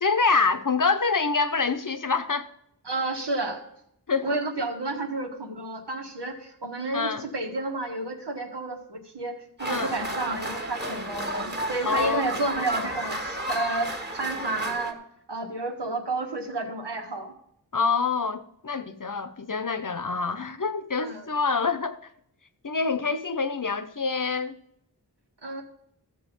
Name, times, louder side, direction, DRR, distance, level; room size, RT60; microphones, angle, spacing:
voice 1, 0.0-2.5 4.1-4.4 6.9-7.3 9.7-9.9 11.8-12.3 17.7-22.1 22.6-24.6, left 4 dB, 50° left, 0.9 m, -26 dB
voice 2, 2.9-3.6 4.2-15.0 15.3-17.3 21.0-21.2 25.4-25.6, right 2 dB, 80° right, 1.7 m, -31 dB
sound 1, 9.6-14.9, right 1 dB, 25° right, 1.6 m, -32 dB
14.5 x 6.9 x 5.3 m
wide cardioid pair, 50°, 40 cm